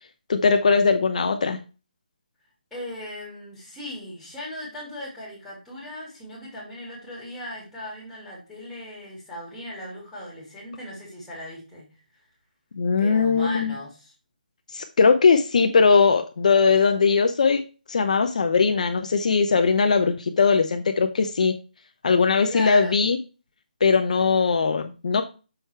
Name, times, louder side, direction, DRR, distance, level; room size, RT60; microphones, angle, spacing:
voice 1, 0.3-1.6 12.8-13.8 14.7-17.6 17.9-21.5 22.0-23.2 23.8-25.2, left 5 dB, 50° left, 6 dB, 0.6 m, -20 dB
voice 2, 2.7-11.8 13.0-14.1 22.4-22.9, left 1 dB, ahead, -6 dB, 2.8 m, -37 dB
6.4 x 4.6 x 4.5 m, 0.33 s
hypercardioid pair, 165°, 5 cm